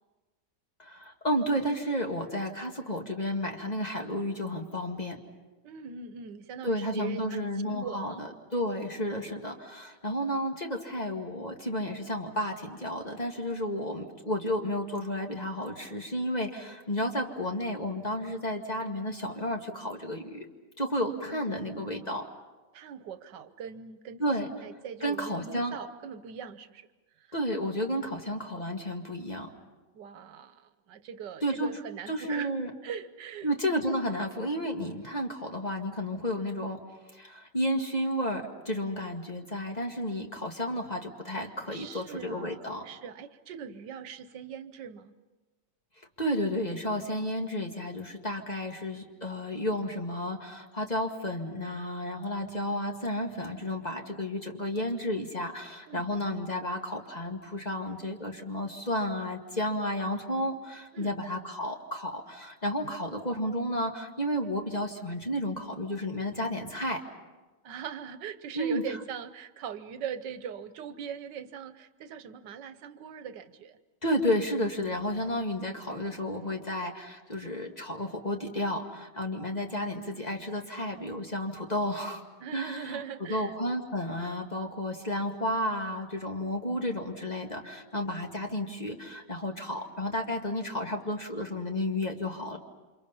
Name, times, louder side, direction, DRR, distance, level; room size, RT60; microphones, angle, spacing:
voice 1, 0.8-5.2 6.6-8.3 8.5-20.5 20.8-22.2 24.2-24.5 25.0-25.8 27.3-29.5 31.4-31.7 32.1-32.7 33.4-36.8 37.1-42.8 46.2-67.0 68.5-68.8 74.0-82.2 82.5-92.6, equal, 25° left, 2 dB, 2.0 m, -32 dB
voice 2, 5.6-8.3 20.9-22.2 22.7-26.9 27.2-27.3 29.9-32.5 32.8-33.5 41.3-45.1 55.9-56.1 60.9-61.2 67.6-73.8 82.4-83.6, right 7 dB, 85° right, 12 dB, 1.6 m, -41 dB
29.5 x 26.5 x 5.6 m, 1.2 s
omnidirectional pair, 1.8 m